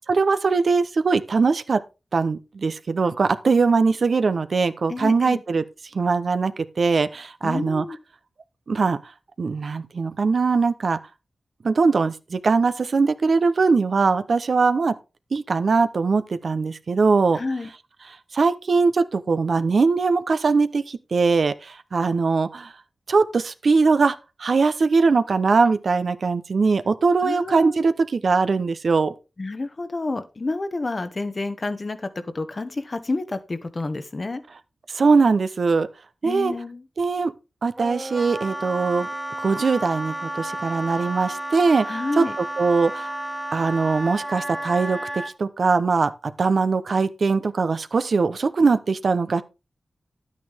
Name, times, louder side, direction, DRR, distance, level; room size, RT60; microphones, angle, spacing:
voice 1, 0.1-1.8 2.1-5.6 5.9-7.9 8.7-9.0 9.4-11.0 11.6-14.9 15.3-17.4 18.1-22.7 23.1-29.1 34.9-35.9 36.2-36.5 37.0-37.3 37.6-39.1 39.4-43.1 43.5-46.1 46.4-49.4, right 4 dB, 65° right, 0.8 m, -21 dB
voice 2, 4.9-5.4 7.4-8.0 17.3-17.7 27.2-27.9 29.4-32.1 32.3-34.4 36.2-36.8 41.9-42.3, left 2 dB, 40° left, 1.1 m, -29 dB
Wind instrument woodwind instrument, 37.8-45.3, right 1 dB, 15° right, 1.1 m, -32 dB
11.0 x 9.2 x 3.5 m
cardioid pair, 70°, 0 cm